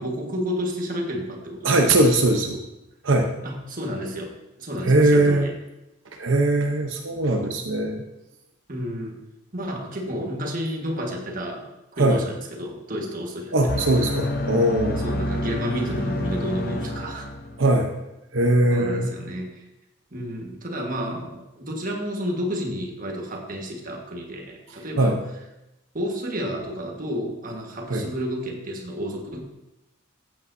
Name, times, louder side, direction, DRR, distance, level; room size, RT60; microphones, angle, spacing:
voice 1, 0.0-2.6 3.4-5.5 8.7-9.2 9.5-11.7 11.9-13.8 15.0-17.3 18.7-19.6 20.1-25.2 25.9-29.4, equal, 45° right, 0 dB, 1.6 m, -31 dB
voice 2, 1.6-2.6 3.0-3.3 4.8-5.5 6.2-8.0 12.0-12.2 13.5-15.1 17.6-17.9 18.3-19.1 25.0-25.2 27.9-28.0, right 2 dB, 80° right, 2 dB, 0.9 m, -20 dB
sound 1, 13.7-17.8, left 1 dB, 50° left, 0.8 m, -28 dB
14.0 x 8.7 x 2.7 m, 0.93 s
head